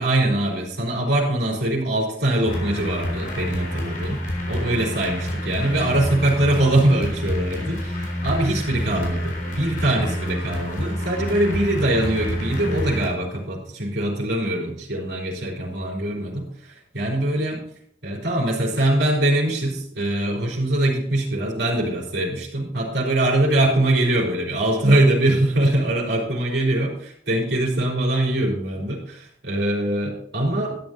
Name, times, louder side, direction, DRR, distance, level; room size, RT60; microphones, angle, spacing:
voice 1, 0.0-17.6 18.0-30.8, right 1 dB, 85° right, -3 dB, 4.1 m, -22 dB
sound 1, 2.5-13.1, equal, 50° left, 3.9 m, -28 dB
13.0 x 9.3 x 4.3 m, 0.65 s
head